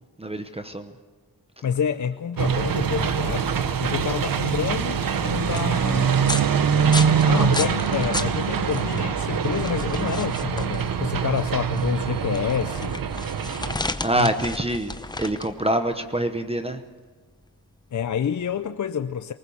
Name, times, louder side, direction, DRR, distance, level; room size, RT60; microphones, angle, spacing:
voice 1, 0.2-0.9 14.0-16.8, right 1 dB, 15° right, 8 dB, 0.9 m, -25 dB
voice 2, 1.6-6.2 7.2-13.0 14.1-14.3 17.9-19.3, left 8 dB, 50° left, 9 dB, 0.6 m, -28 dB
sound 1, 2.4-13.8, right 7 dB, 60° right, 1.0 m, -24 dB
sound 2, 4.2-18.7, left 2 dB, 10° left, 0.7 m, -35 dB
20.0 x 19.5 x 7.1 m, 1.4 s
wide cardioid pair, 150°, 38 cm